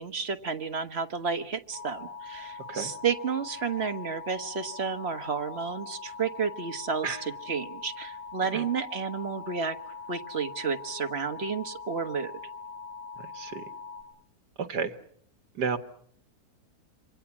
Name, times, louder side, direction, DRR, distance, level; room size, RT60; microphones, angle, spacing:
voice 1, 0.0-9.8 10.1-12.3, right 6 dB, 40° right, 8 dB, 1.5 m, -31 dB
sound 1, 1.7-14.0, left 5 dB, 70° left, 5.4 m, -42 dB
voice 2, 13.2-13.7 14.6-14.9 15.6-15.8, right 5 dB, 75° right, 10 dB, 2.0 m, -32 dB
27.5 x 24.0 x 7.3 m, 0.65 s
omnidirectional pair, 1.8 m